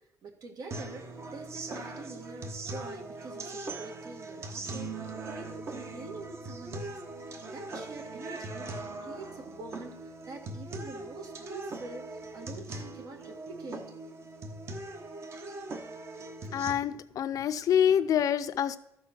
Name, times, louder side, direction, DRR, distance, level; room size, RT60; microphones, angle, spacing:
voice 1, 0.0-8.7 9.0-13.8, right 3 dB, 65° right, 4 dB, 1.7 m, -46 dB
sound 1, 0.7-16.7, right 2 dB, 45° right, 1.1 m, -40 dB
voice 2, 16.5-18.8, left 9 dB, 60° left, 13 dB, 0.5 m, -26 dB
13.5 x 4.6 x 5.9 m, 0.79 s
cardioid pair, 150°, 7 cm